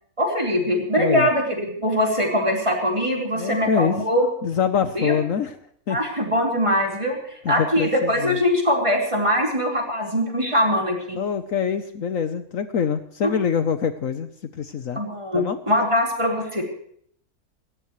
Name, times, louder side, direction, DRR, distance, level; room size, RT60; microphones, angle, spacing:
voice 1, 0.2-4.3 4.9-5.1 5.9-7.2 7.5-11.2 15.0-16.6, equal, 20° right, 0 dB, 4.3 m, -22 dB
voice 2, 1.0-1.3 3.3-4.0 4.4-5.6 5.9-6.0 7.4-8.4 11.1-15.0 15.3-15.6, left 7 dB, 65° left, 10 dB, 1.3 m, -25 dB
28.5 x 14.0 x 3.2 m, 0.65 s
omnidirectional pair, 1.6 m